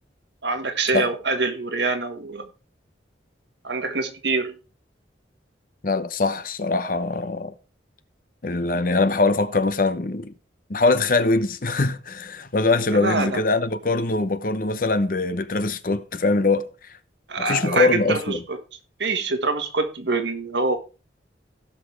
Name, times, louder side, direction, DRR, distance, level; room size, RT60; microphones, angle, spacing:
voice 1, 0.4-2.5 3.6-4.5 12.9-13.4 17.3-18.6 19.0-20.8, right 3 dB, 75° right, 1.7 m, -25 dB
voice 2, 5.8-7.5 8.4-10.3 10.7-16.9 17.4-18.4, left 3 dB, 50° left, 0.8 m, -22 dB
17.0 x 5.9 x 3.4 m
head